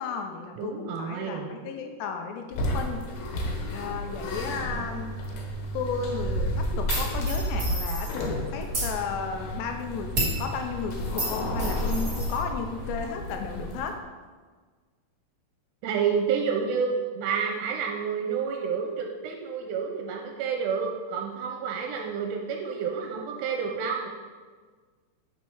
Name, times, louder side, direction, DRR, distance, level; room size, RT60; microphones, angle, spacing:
voice 1, 0.0-3.1 3.7-5.3 5.7-14.0, left 6 dB, 85° left, 4 dB, 2.9 m, -34 dB
voice 2, 0.6-1.5 15.8-24.1, right 6 dB, 85° right, 2 dB, 2.8 m, -29 dB
sound 1, 2.5-14.0, equal, 65° left, 2.7 m, -31 dB
sound 2, 6.9-8.2 8.6-8.9 10.1-10.4 11.2-12.4, right 1 dB, 25° right, 2.1 m, -31 dB
8.4 x 4.7 x 6.1 m, 1.5 s
omnidirectional pair, 5.0 m